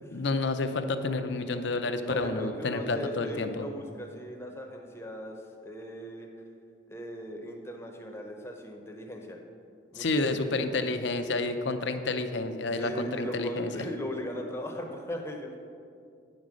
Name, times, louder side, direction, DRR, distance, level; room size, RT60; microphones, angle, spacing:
voice 1, 0.1-3.6 10.0-13.8, left 3 dB, 70° left, 8 dB, 0.6 m, -30 dB
voice 2, 2.0-6.3 6.9-9.4 9.9-10.7 12.7-15.5, equal, 15° left, 2 dB, 0.8 m, -39 dB
9.8 x 5.3 x 6.2 m, 2.4 s
head